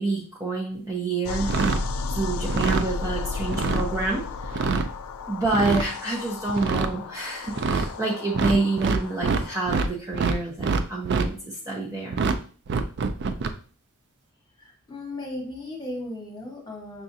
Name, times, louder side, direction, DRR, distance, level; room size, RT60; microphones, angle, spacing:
voice 1, 0.0-1.5 2.1-4.8 5.3-12.2, right 3 dB, 15° right, -4 dB, 0.7 m, -28 dB
sound 1, 1.2-9.9, left 4 dB, 75° left, 0.3 m, -33 dB
sound 2, 1.4-1.9 2.4-2.9 3.4-3.9 4.4-4.9 5.4-5.9 6.5-6.9 7.5-7.9 8.3-9.9 10.1-11.3 12.1-12.4 12.7-13.5, right 4 dB, 50° right, 0.3 m, -25 dB
voice 2, 14.6-17.0, left 1 dB, 20° left, -2 dB, 1.3 m, -36 dB
5.8 x 2.4 x 2.6 m, 0.41 s
head